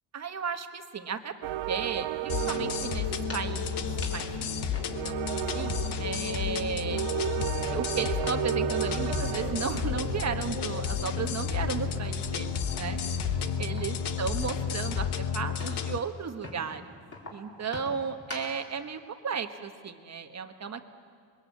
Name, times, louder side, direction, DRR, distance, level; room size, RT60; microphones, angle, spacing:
voice 1, 0.1-1.3 1.7-3.1 3.3-4.5 5.0-7.0 7.7-13.0 13.6-16.9 17.3-20.8, right 6 dB, 35° right, 7 dB, 1.3 m, -34 dB
sound 1, 1.4-14.7, right 12 dB, 85° right, 0.7 m, -35 dB
sound 2, 2.3-16.0, left 8 dB, 65° left, 1.3 m, -32 dB
sound 3, 3.3-3.6 4.0-4.3 4.7-6.0 6.3-9.1 9.4-9.6 10.0-11.4 11.8-16.0 16.4-16.7 17.1-18.6, left 2 dB, 30° left, 4.3 m, -46 dB
28.5 x 22.5 x 8.6 m, 2.2 s
cardioid pair, 150°, 44 cm